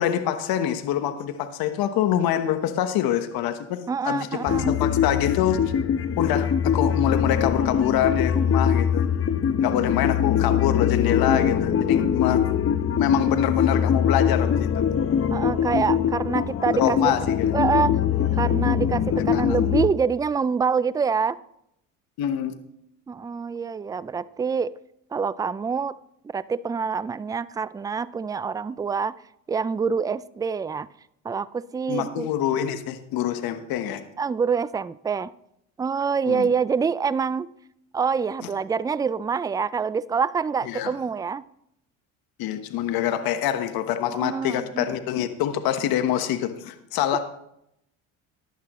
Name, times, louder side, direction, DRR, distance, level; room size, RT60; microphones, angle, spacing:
voice 1, 0.0-5.7 6.2-9.1 9.6-12.4 13.0-14.8 16.7-17.5 19.3-19.5 22.2-22.5 31.9-34.0 36.3-36.5 40.7-40.9 42.4-47.2, left 10 dB, 65° left, 8 dB, 1.2 m, -25 dB
voice 2, 3.9-4.8 15.3-17.1 17.5-18.0 18.4-21.4 23.1-24.7 25.1-26.0 26.3-29.1 29.5-30.9 31.2-32.3 34.2-35.3 35.8-37.5 37.9-41.4 44.1-44.9 45.2-45.3 47.1-47.2, right 5 dB, 10° right, 19 dB, 0.3 m, -26 dB
sound 1, 4.5-19.9, left 8 dB, 35° left, 1.0 m, -23 dB
15.5 x 11.0 x 3.1 m, 0.79 s
hypercardioid pair, 70°, 39 cm